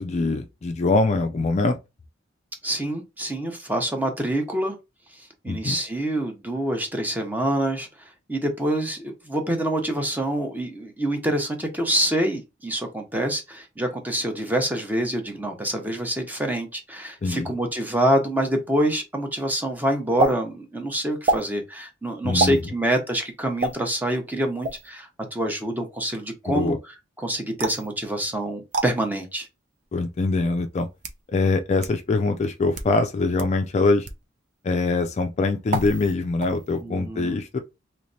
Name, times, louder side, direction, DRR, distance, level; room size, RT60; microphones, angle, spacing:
voice 1, 0.0-1.8 5.5-5.8 17.2-17.5 22.2-22.6 26.5-26.8 29.9-30.9 31.3-34.1 34.6-37.6, left 3 dB, 35° left, 0.4 m, -23 dB
voice 2, 2.6-4.8 5.4-7.9 8.3-26.7 27.2-29.5 36.8-37.4, right 1 dB, 10° right, 0.8 m, -26 dB
sound 1, 20.2-20.3 21.2-21.5 22.4-22.6 23.6-23.7 24.6-24.9 27.6-27.9 28.7-28.9 29.8-29.9 30.8-31.2 31.8-31.9 32.6-32.9 33.4-33.5 34.0-34.2 35.7-36.1 36.4-36.8, right 2 dB, 40° right, 0.5 m, -26 dB
3.2 x 3.1 x 2.6 m
head